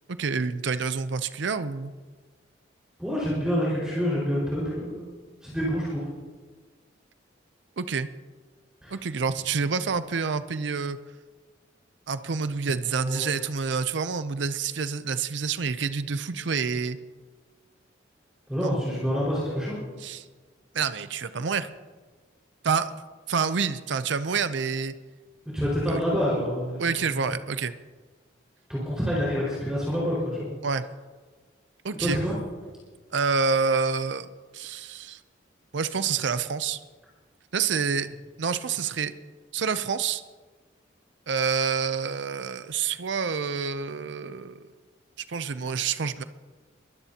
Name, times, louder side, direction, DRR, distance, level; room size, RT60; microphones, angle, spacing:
voice 1, 0.1-1.9 7.8-8.1 8.9-11.0 12.1-17.0 18.6-18.8 20.0-20.3 20.7-21.7 22.6-22.9 23.3-24.9 25.9-26.0 26.8-27.7 30.6-30.9 31.8-32.2 33.1-34.3 34.5-35.2 35.7-36.8 37.5-38.1 38.4-39.1 39.5-40.2 41.3-44.7 45.3-46.2, right 5 dB, 70° right, 12 dB, 0.6 m, -27 dB
voice 2, 3.0-5.1 5.4-6.1 8.8-9.0 13.0-13.3 18.5-19.8 25.5-26.9 28.7-30.5 32.0-32.4, equal, 5° right, -8 dB, 5.0 m, -27 dB
22.5 x 16.0 x 2.9 m, 1.4 s
head